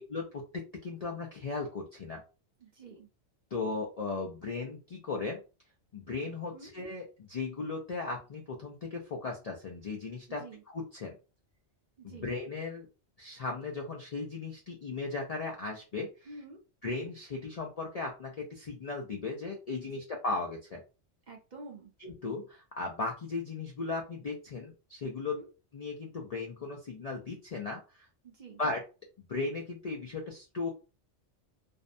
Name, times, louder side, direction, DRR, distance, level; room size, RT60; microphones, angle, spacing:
voice 1, 0.1-2.2 3.5-5.4 5.9-10.4 10.7-11.2 12.0-12.9 13.2-16.1 16.8-20.8 22.0-25.4 25.7-28.1 28.6-28.8 29.2-30.7, left 3 dB, 60° left, 1 dB, 0.4 m, -37 dB
voice 2, 2.6-3.1 6.5-6.7 10.3-10.6 12.0-12.3 16.2-16.6 21.3-21.9 25.2-25.5 28.2-28.6, right 2 dB, 50° right, 1 dB, 0.6 m, -48 dB
2.5 x 2.1 x 2.5 m, 0.31 s
omnidirectional pair, 1.2 m